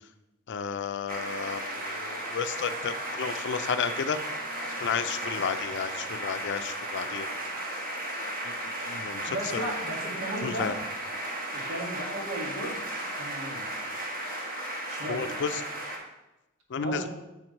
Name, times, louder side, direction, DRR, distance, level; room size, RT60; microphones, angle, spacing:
voice 1, 0.5-4.2 4.8-7.3 7.8-7.9 8.2-8.5 8.9-9.4 10.4-10.7 15.1-15.6 16.7-17.1, left 6 dB, 55° left, 10 dB, 0.4 m, -32 dB
sound 1, 1.1-16.0, right 1 dB, 45° right, 1.4 m, -35 dB
voice 2, 9.3-10.7 11.5-13.7 14.9-15.3 16.8-17.1, right 1 dB, 75° right, -1 dB, 1.9 m, -36 dB
7.2 x 4.5 x 5.2 m, 0.97 s
head